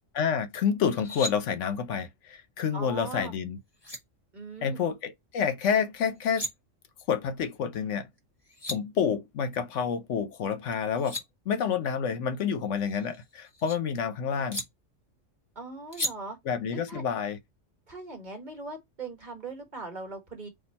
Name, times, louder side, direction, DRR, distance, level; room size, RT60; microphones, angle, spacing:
voice 1, 0.1-3.6 4.6-6.5 7.1-8.1 8.7-11.2 11.5-14.6 16.4-17.4, left 7 dB, 70° left, 1.0 m, -28 dB
sound 1, 0.8-1.3 3.4-3.5 3.8-4.0 6.1-6.5 8.2-8.3 8.4-8.8 10.7-11.2 12.7-13.8 14.5-14.6 15.9-16.1, equal, 20° left, 1.2 m, -35 dB
voice 2, 2.7-3.3 4.3-4.8 15.5-16.4 16.9-17.0 17.9-20.5, right 3 dB, 35° right, 1.6 m, -40 dB
4.3 x 2.7 x 4.0 m
omnidirectional pair, 1.3 m